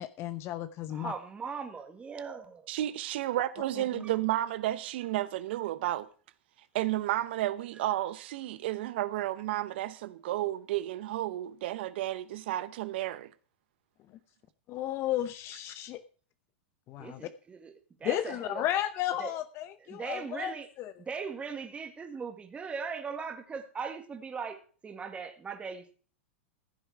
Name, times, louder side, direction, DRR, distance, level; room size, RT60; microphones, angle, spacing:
voice 1, 0.0-1.1 3.9-4.0 14.7-16.0 16.9-17.2 18.0-20.9, left 12 dB, 40° left, 0.8 m, -33 dB
voice 2, 0.9-2.7 4.0-4.2 7.7-7.9 17.0-18.7 19.2-19.3 19.8-20.7 21.0-25.9, right 5 dB, 20° right, 1.9 m, -39 dB
voice 3, 2.7-6.1 6.7-13.3, right 14 dB, 65° right, 0.8 m, -32 dB
15.0 x 7.8 x 4.7 m
hypercardioid pair, 105°, 6 cm